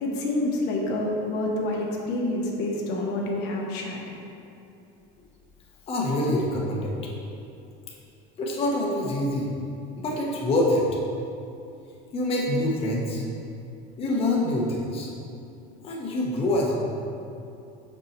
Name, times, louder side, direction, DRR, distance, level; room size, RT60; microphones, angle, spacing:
voice 1, 0.0-4.2, left 1 dB, 55° left, -1 dB, 0.9 m, -28 dB
voice 2, 5.9-6.9 8.4-9.5 10.0-10.9 12.1-13.2 14.0-15.1 15.8-16.8, left 1 dB, 30° left, -3 dB, 0.8 m, -25 dB
5.3 x 4.5 x 4.2 m, 2.7 s
cardioid pair, 140°, 20 cm